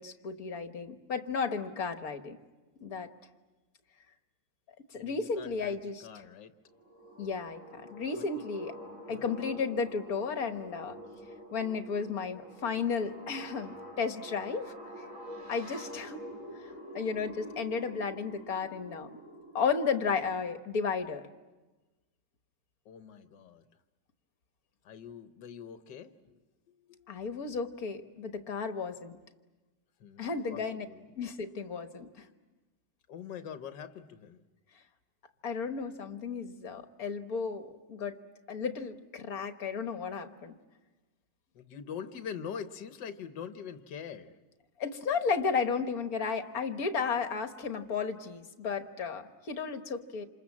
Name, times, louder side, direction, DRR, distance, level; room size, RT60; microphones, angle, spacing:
voice 1, 0.0-2.4 2.8-3.1 4.9-6.1 7.2-8.7 9.1-11.0 11.5-14.7 15.5-16.3 16.9-19.1 19.5-21.2 27.1-29.2 30.2-30.9 31.2-32.3 35.4-38.2 38.5-40.5 44.8-50.2, left 5 dB, 55° left, 7 dB, 1.8 m, -33 dB
voice 2, 5.0-6.5 8.2-8.4 9.1-9.3 22.9-23.6 24.8-26.4 26.7-27.2 30.0-31.1 33.1-34.4 41.5-44.4, left 7 dB, 80° left, 8 dB, 1.7 m, -44 dB
sound 1, 6.7-19.8, equal, 45° right, 6.5 m, -47 dB
28.0 x 27.5 x 7.4 m, 1.2 s
omnidirectional pair, 1.9 m